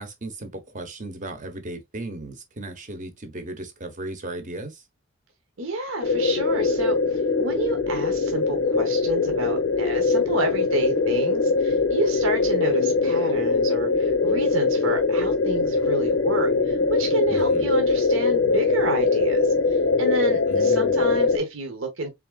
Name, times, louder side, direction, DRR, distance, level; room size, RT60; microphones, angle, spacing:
voice 1, 0.0-4.8 17.3-17.7 20.5-21.3, right 2 dB, 35° right, 0.9 m, -36 dB
voice 2, 5.6-22.1, right 1 dB, 70° right, 1.0 m, -29 dB
sound 1, 6.0-21.4, left 4 dB, 60° left, 0.6 m, -22 dB
4.2 x 3.6 x 2.3 m
head